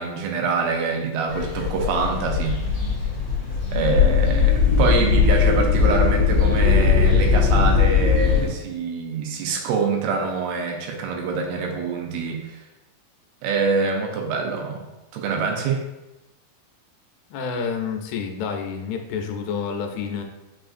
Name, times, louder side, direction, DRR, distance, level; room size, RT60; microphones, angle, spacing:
voice 1, 0.0-2.6 3.7-12.6 13.4-14.8 15.1-15.8, right 4 dB, 90° right, 2 dB, 2.5 m, -25 dB
sound 1, 1.3-8.5, left 6 dB, 55° left, 2.3 m, -19 dB
voice 2, 17.3-20.2, left 6 dB, 90° left, 4 dB, 2.5 m, -29 dB
5.8 x 2.5 x 2.4 m, 0.97 s
omnidirectional pair, 4.3 m